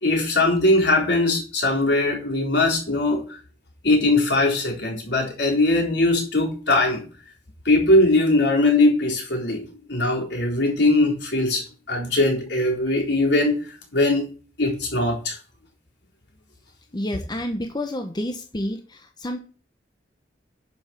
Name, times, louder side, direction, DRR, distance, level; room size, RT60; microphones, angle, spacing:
voice 1, 0.0-3.4 3.8-7.1 7.7-13.6 13.9-14.2 14.6-15.4, left 2 dB, 70° left, -1 dB, 3.9 m, -20 dB
voice 2, 16.9-19.4, left 1 dB, 25° left, 5 dB, 0.9 m, -29 dB
11.0 x 5.3 x 5.9 m, 0.37 s
head